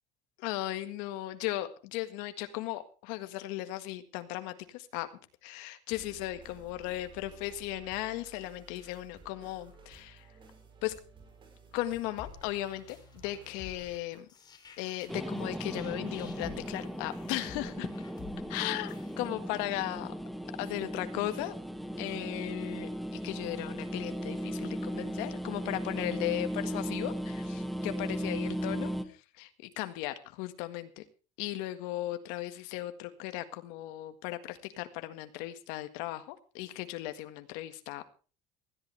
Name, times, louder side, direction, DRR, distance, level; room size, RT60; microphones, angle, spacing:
voice 1, 0.4-5.1 5.4-10.3 10.8-10.9 11.7-14.3 14.8-17.9 18.5-20.1 20.6-21.5 22.0-31.0 31.4-38.0, left 15 dB, 85° left, 9 dB, 1.8 m, -37 dB
sound 1, 5.9-13.9, right 3 dB, 40° right, 7.0 m, -55 dB
sound 2, 11.9-19.1, left 6 dB, 30° left, 3.4 m, -52 dB
sound 3, 15.1-29.0, equal, ahead, 1.5 m, -37 dB
20.0 x 14.0 x 3.4 m, 0.36 s
cardioid pair, 130°, 13 cm